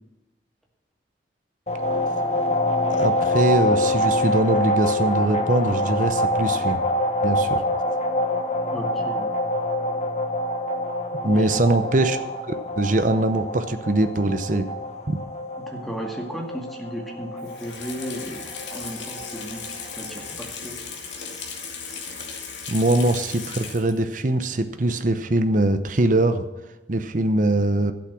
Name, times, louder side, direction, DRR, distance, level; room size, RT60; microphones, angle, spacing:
sound 1, 1.7-20.2, left 1 dB, 35° left, 1.2 m, -26 dB
voice 1, 2.9-6.8 7.2-7.7 11.2-12.2 12.5-14.7 15.1-15.2 22.3-22.4 22.7-26.5 26.9-27.9, right 2 dB, 45° right, 9 dB, 0.8 m, -22 dB
voice 2, 8.7-9.3 11.2-11.6 15.6-20.8, equal, ahead, 0 dB, 2.0 m, -35 dB
Water tap faucet / Sink (filling or washing), 17.4-24.1 24.5-24.6, left 5 dB, 85° left, 2.5 m, -36 dB
12.0 x 8.6 x 6.2 m, 1.1 s
head